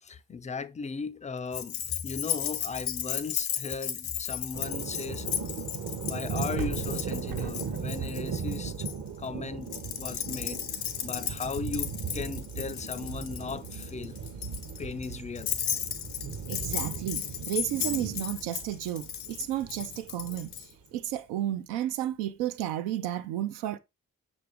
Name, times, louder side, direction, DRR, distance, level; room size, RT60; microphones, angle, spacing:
voice 1, 0.0-5.3 6.0-8.7 9.2-14.2 14.8-15.6, left 5 dB, 20° left, 0.3 m, -37 dB
Keys jangling, 1.5-8.9 9.7-20.7, left 10 dB, 75° left, 0.8 m, -35 dB
sound 1, 4.5-20.6, right 6 dB, 50° right, 0.8 m, -38 dB
Thunder, 6.6-20.7 21.1-21.2, right 6 dB, 65° right, 1.1 m, -44 dB
voice 2, 16.5-20.5 20.9-23.8, right 12 dB, 85° right, 0.5 m, -32 dB
5.9 x 2.6 x 3.4 m
hypercardioid pair, 40°, 40 cm